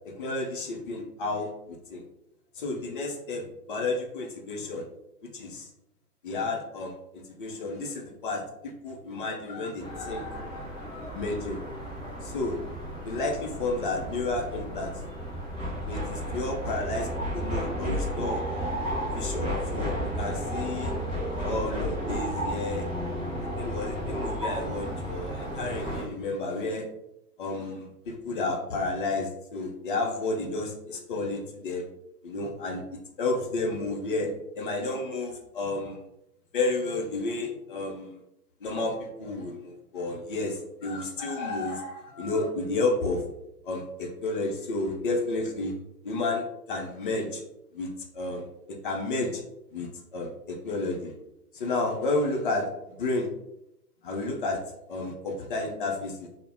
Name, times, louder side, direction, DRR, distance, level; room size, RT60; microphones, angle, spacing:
voice 1, 0.2-2.0 2.6-4.8 5.2-5.7 6.2-11.6 12.2-12.6 13.0-14.9 15.9-18.4 19.2-20.9 21.4-22.8 23.6-26.8 27.4-31.8 32.2-32.8 33.2-34.3 34.6-36.0 36.5-38.2 38.6-43.2 43.7-45.7 46.0-47.4 47.7-48.5 48.8-49.4 49.7-51.1 51.5-52.7 53.0-53.3 54.0-54.6 54.9-56.3, left 2 dB, 35° left, 1 dB, 0.5 m, -31 dB
sound 1, 9.8-26.0, equal, 10° right, 0.9 m, -33 dB
2.1 x 2.0 x 3.2 m, 0.82 s
figure-of-eight pair, 115°, 46 cm